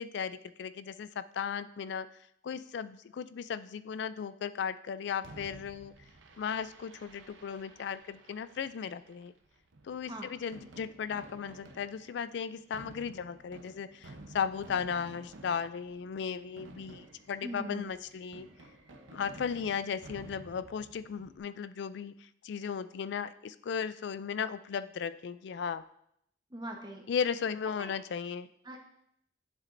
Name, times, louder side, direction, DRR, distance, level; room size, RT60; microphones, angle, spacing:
voice 1, 0.0-2.1 2.4-5.9 6.4-9.3 9.8-18.5 19.1-25.8 27.1-28.5, left 7 dB, 65° left, 15 dB, 0.3 m, -36 dB
Fireworks, 5.2-21.4, right 2 dB, 90° right, 0.9 m, -53 dB
voice 2, 17.4-17.9 26.5-27.1 27.8-27.9 28.6-28.8, right 1 dB, 25° right, 2 dB, 1.1 m, -41 dB
10.5 x 7.4 x 2.6 m, 0.74 s
head